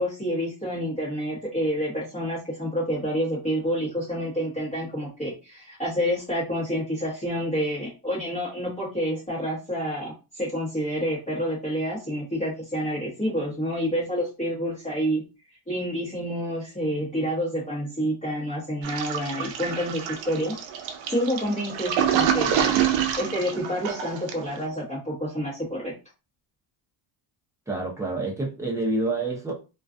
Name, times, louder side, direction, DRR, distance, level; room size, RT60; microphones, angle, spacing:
voice 1, 0.0-15.2 15.7-20.6 21.1-25.9, equal, 15° left, -7 dB, 0.9 m, -28 dB
Toilet flush, 18.8-24.6, right 9 dB, 65° right, 0.6 m, -26 dB
voice 2, 27.7-29.5, right 2 dB, 5° right, -2 dB, 0.6 m, -27 dB
2.4 x 2.2 x 2.5 m, 0.30 s
cardioid pair, 145°, 50 cm